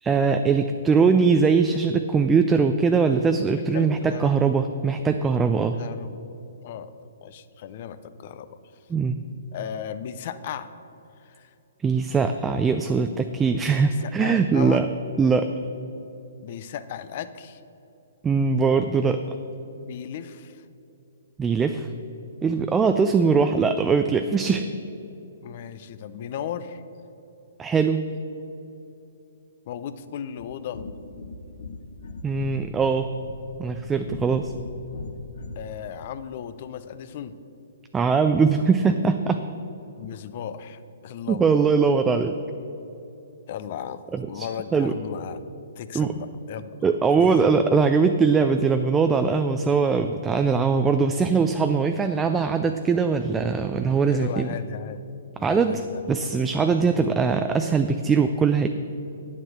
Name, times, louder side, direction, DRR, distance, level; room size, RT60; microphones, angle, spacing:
voice 1, 0.0-5.8 8.9-9.2 11.8-14.9 15.2-15.5 18.2-19.2 21.4-21.9 22.4-24.7 27.6-28.0 32.2-33.1 33.6-34.5 37.9-39.4 41.3-42.3 44.1-44.5 44.7-44.9 45.9-46.1 46.8-54.5 55.4-55.8 56.1-58.7, right 5 dB, 15° right, 7 dB, 0.4 m, -21 dB
voice 2, 3.6-4.4 5.8-6.2 6.6-6.9 7.2-8.6 9.5-10.7 11.2-11.5 13.9-14.8 16.4-17.6 19.8-20.6 25.4-26.8 29.7-30.8 35.5-37.4 40.0-41.6 43.5-44.0 44.3-45.4 45.8-46.8 47.1-47.5 54.1-55.1 55.4-56.2 56.6-56.8, left 9 dB, 50° left, 12 dB, 0.6 m, -36 dB
sound 1, 30.4-35.8, left 3 dB, 65° left, 0.9 m, -39 dB
9.1 x 7.4 x 6.4 m, 2.8 s
hypercardioid pair, 125°, 0 cm